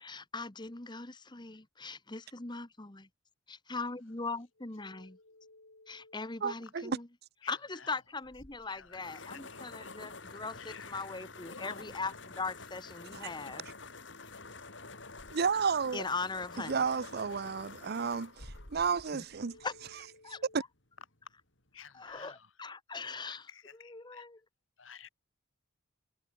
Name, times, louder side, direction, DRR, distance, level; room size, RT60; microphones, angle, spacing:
voice 1, 0.0-3.0 3.5-5.2 5.9-7.1 7.5-13.6 15.9-16.8 19.1-19.2 19.6-19.7 20.2-20.7 21.9-24.4, left 4 dB, 25° left, 1.3 m, -40 dB
voice 2, 4.8-6.2 7.4-8.0 8.6-9.9 10.4-11.1 11.5-11.8 14.1-14.3 19.4-20.6 21.7-22.5 22.9-24.2 24.8-25.1, left 6 dB, 85° left, 3.7 m, -54 dB
voice 3, 6.4-7.0 13.2-13.3 15.3-16.0 16.7-19.6 20.5-20.6, right 5 dB, 55° right, 0.6 m, -32 dB
sound 1, 8.2-20.1, left 3 dB, 65° left, 4.7 m, -49 dB
head